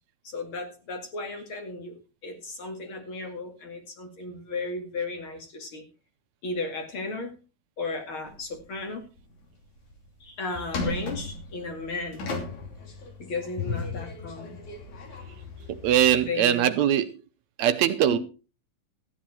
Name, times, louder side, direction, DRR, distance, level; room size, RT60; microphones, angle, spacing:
voice 1, 0.2-2.0 2.2-5.8 6.4-7.3 7.8-9.0 10.2-12.3 13.2-14.6 16.1-16.7 18.1-18.2, left 3 dB, 45° left, 2.8 m, -35 dB
sound 1, 8.3-8.8 9.2-9.3 9.8-10.1 10.5-16.2, left 3 dB, 75° left, 4.2 m, -36 dB
voice 2, 15.7-17.1 17.6-18.2, right 10 dB, 75° right, 2.0 m, -22 dB
14.0 x 9.9 x 4.4 m
omnidirectional pair, 3.4 m